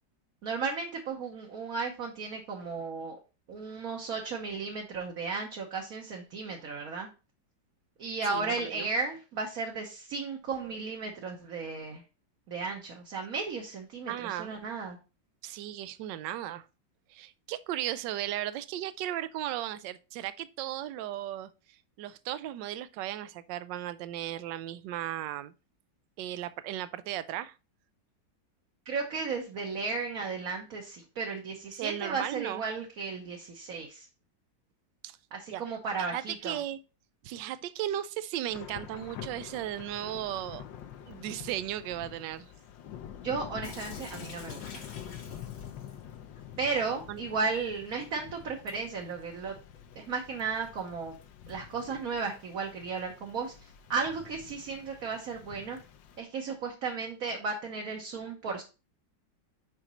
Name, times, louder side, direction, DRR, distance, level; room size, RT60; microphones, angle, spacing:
voice 1, 0.4-3.2 3.5-7.1 8.0-12.0 12.5-15.0 28.9-34.1 35.3-36.6 43.2-44.8 46.6-49.5 49.9-51.2 51.5-55.8 56.2-58.6, right 4 dB, 55° right, 1.4 m, -34 dB
voice 2, 8.3-8.9 14.1-14.6 15.4-16.7 17.1-25.5 26.2-27.5 31.7-32.6 35.0-35.2 35.5-35.6 36.0-36.8 37.2-40.6 41.1-42.5 47.1-47.2, right 12 dB, 80° right, 1.2 m, -36 dB
Thunder / Rain, 38.5-56.2, left 9 dB, 85° left, 1.5 m, -47 dB
Sink (filling or washing) / Drip, 43.6-52.5, left 4 dB, 60° left, 1.8 m, -53 dB
6.1 x 5.1 x 4.2 m
omnidirectional pair, 2.0 m